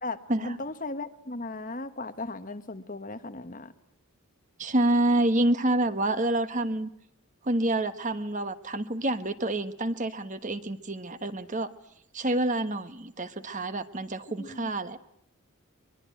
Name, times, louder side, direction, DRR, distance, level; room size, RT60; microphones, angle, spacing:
voice 1, 0.0-3.7 14.4-14.7, left 2 dB, 35° left, 10 dB, 1.4 m, -37 dB
voice 2, 4.6-6.9 7.4-11.7 12.1-15.0, right 1 dB, 35° right, 11 dB, 1.3 m, -27 dB
23.5 x 23.5 x 9.2 m, 0.71 s
head